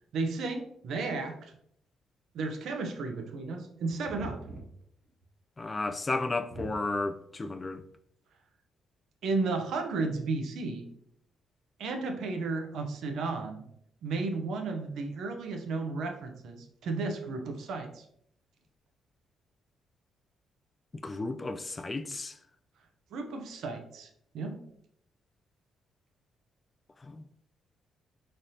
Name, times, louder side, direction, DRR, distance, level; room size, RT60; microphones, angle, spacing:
voice 1, 0.1-1.5 2.3-4.4 9.2-10.8 11.8-13.7 14.0-18.0 23.1-24.1 24.3-24.6, right 3 dB, 75° right, 0.7 m, -33 dB
sound 1, 4.0-5.2 5.6-5.7 6.0-6.1 6.5-7.2 7.9-8.0, right 2 dB, 50° right, 1.5 m, -43 dB
voice 2, 5.6-7.8 21.0-22.3 27.0-27.2, left 3 dB, 25° left, 0.3 m, -33 dB
4.1 x 3.3 x 2.7 m
cardioid pair, 90°, 0 cm